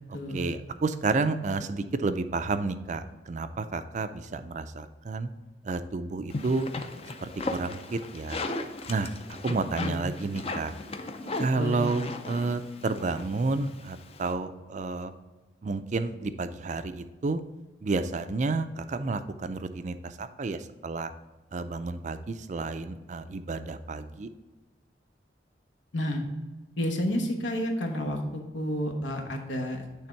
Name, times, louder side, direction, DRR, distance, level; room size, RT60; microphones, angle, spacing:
voice 1, 0.1-5.3 5.6-6.7 7.2-8.4 8.9-10.7 11.4-15.1 15.6-17.4 17.8-21.1 21.5-24.3, right 3 dB, 40° right, 11 dB, 0.4 m, -31 dB
sound 1, 6.3-14.3, left 2 dB, 30° left, 0.5 m, -37 dB
voice 2, 11.6-11.9 25.9-26.2 26.8-29.8, left 1 dB, 85° left, 3 dB, 1.2 m, -30 dB
8.6 x 3.5 x 4.5 m, 1.2 s
head